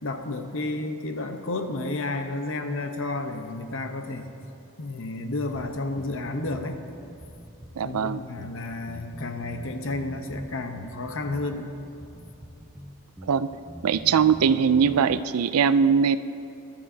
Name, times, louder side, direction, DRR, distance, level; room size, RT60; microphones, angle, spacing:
voice 1, 0.0-4.3 4.8-6.9 7.8-11.7, left 2 dB, 60° left, 6 dB, 0.9 m, -31 dB
sound 1, 5.5-15.1, equal, 5° right, 0.7 m, -43 dB
voice 2, 7.8-8.2 13.3-13.5 13.8-16.2, right 6 dB, 85° right, 13 dB, 0.4 m, -21 dB
21.5 x 12.0 x 2.8 m, 2.8 s
head